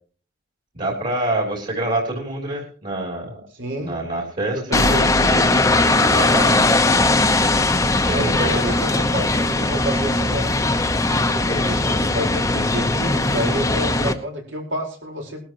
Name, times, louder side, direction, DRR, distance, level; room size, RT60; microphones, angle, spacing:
voice 1, 0.7-3.4 3.8-5.5 5.9-6.8 8.0-8.6, right 1 dB, 40° right, 0 dB, 3.2 m, -26 dB
voice 2, 3.5-4.0 4.5-5.1 8.1-10.5 11.5-15.4, equal, 75° right, 1 dB, 4.7 m, -29 dB
sound 1, 4.7-14.1, left 2 dB, 15° left, 0.9 m, -19 dB
Gunshot gunfire, 8.4-9.6, left 4 dB, 75° left, 1.5 m, -35 dB
20.0 x 12.5 x 3.0 m, 0.40 s
head